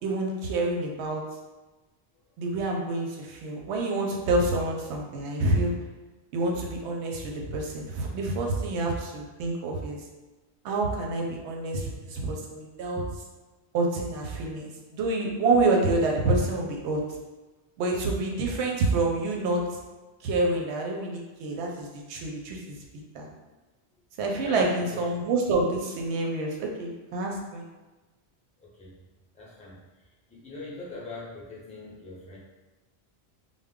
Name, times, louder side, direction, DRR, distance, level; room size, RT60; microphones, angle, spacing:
voice 1, 0.0-1.2 2.4-5.7 6.3-10.0 10.6-13.0 13.7-17.0 17.8-19.6 20.2-22.8 23.1-23.3 24.2-27.6, right 2 dB, 90° right, 0 dB, 0.9 m, -27 dB
voice 2, 24.4-25.1 28.6-28.9 29.3-29.8 30.3-32.4, left 2 dB, 10° left, -7 dB, 0.4 m, -42 dB
2.2 x 2.0 x 3.6 m, 1.2 s
omnidirectional pair, 1.1 m